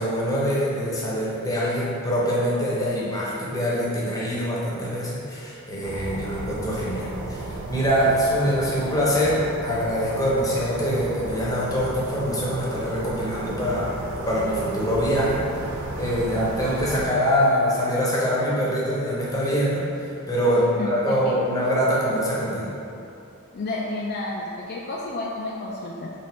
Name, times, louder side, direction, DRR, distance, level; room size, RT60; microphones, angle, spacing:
voice 1, 0.0-13.9 14.3-15.4 15.9-19.8 20.3-22.7, equal, 15° left, -6 dB, 0.7 m, -24 dB
sound 1, 5.8-17.1, right 2 dB, 90° right, 0.4 m, -33 dB
voice 2, 20.8-21.4 23.5-26.1, left 2 dB, 50° left, -3 dB, 0.3 m, -31 dB
4.2 x 2.4 x 4.1 m, 2.7 s
head